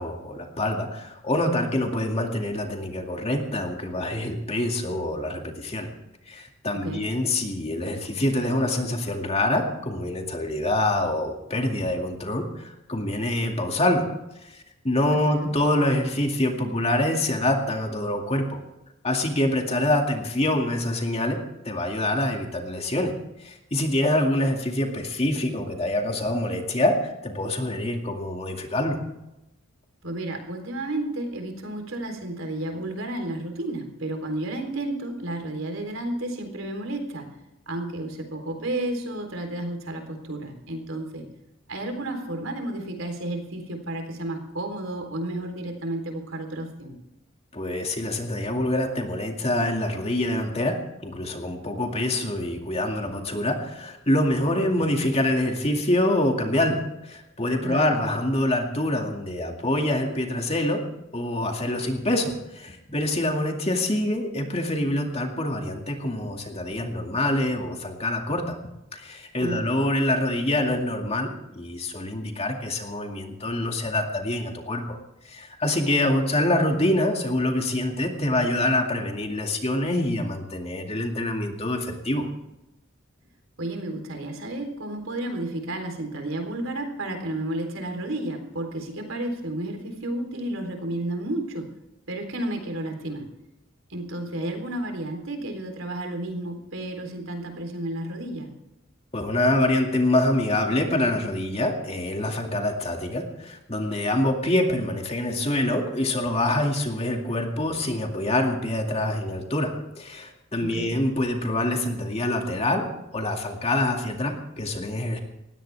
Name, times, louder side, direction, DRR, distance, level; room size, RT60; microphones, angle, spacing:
voice 1, 0.0-5.9 6.3-14.1 14.4-18.6 19.0-21.4 21.6-23.1 23.4-29.0 47.5-50.7 51.0-60.8 61.1-68.6 68.9-75.0 75.2-82.3 99.1-112.8 113.1-115.2, left 1 dB, 30° left, 3 dB, 2.2 m, -25 dB
voice 2, 30.0-37.3 37.7-41.3 41.7-46.9 57.6-58.0 69.4-69.6 83.6-91.7 92.1-93.2 93.9-98.5 110.6-110.9, right 1 dB, 80° right, 4 dB, 3.7 m, -32 dB
20.0 x 16.0 x 3.5 m, 0.93 s
head